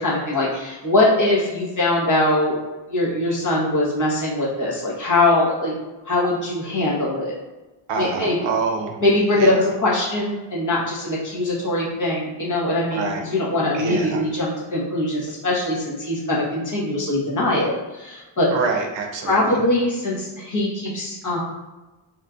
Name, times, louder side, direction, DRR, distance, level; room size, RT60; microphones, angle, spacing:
voice 1, 0.0-2.6 2.9-5.7 6.0-7.3 8.0-8.5 9.0-18.5 19.3-21.4, left 1 dB, 40° left, -5 dB, 1.1 m, -22 dB
voice 2, 7.9-9.0 9.3-9.6 12.9-13.2 13.7-14.2 18.5-19.4, right 4 dB, 70° right, 2 dB, 0.6 m, -26 dB
2.9 x 2.5 x 2.4 m, 1.1 s
cardioid pair, 75°, 47 cm